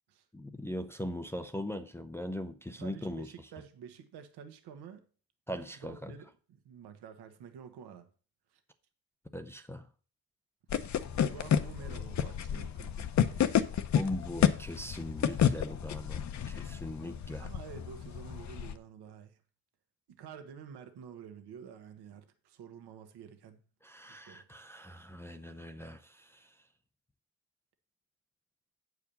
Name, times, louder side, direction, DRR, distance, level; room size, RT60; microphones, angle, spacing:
voice 1, 0.3-3.3 5.5-6.1 9.3-9.9 13.9-17.5 23.8-26.5, left 1 dB, 5° left, 0.5 m, -40 dB
voice 2, 2.8-5.0 5.8-8.1 8.5-8.6 11.1-13.9 17.4-19.4 20.1-23.6 24.1-24.4, right 7 dB, 65° right, 1.4 m, -49 dB
sound 1, 10.7-18.7, left 9 dB, 40° left, 0.8 m, -31 dB
8.7 x 4.8 x 6.8 m
cardioid pair, 120°, 43 cm